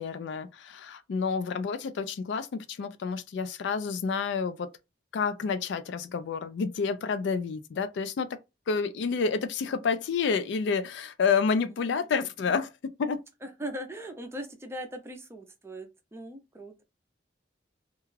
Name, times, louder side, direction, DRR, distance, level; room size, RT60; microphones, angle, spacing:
voice 1, 0.0-4.7 5.1-8.4 8.7-13.2, left 5 dB, 65° left, 0.3 m, -29 dB
voice 2, 13.4-16.8, right 1 dB, 15° right, 0.4 m, -40 dB
2.3 x 2.2 x 3.1 m
head